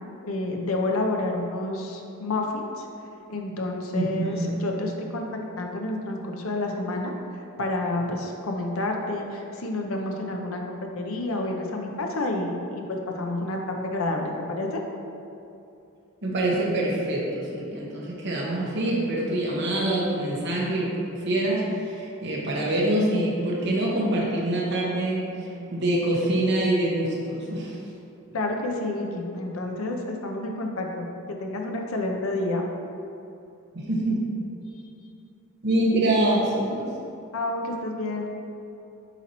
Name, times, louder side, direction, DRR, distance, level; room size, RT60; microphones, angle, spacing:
voice 1, 0.2-2.9 3.3-7.1 7.6-10.6 11.0-14.8 28.3-32.7 37.3-38.3, left 2 dB, 75° left, 2 dB, 0.7 m, -29 dB
voice 2, 3.9-4.5 16.2-25.2 25.7-27.8 33.7-34.2 35.6-36.9, right 1 dB, 50° right, -4 dB, 1.1 m, -25 dB
8.0 x 4.2 x 3.0 m, 2.7 s
head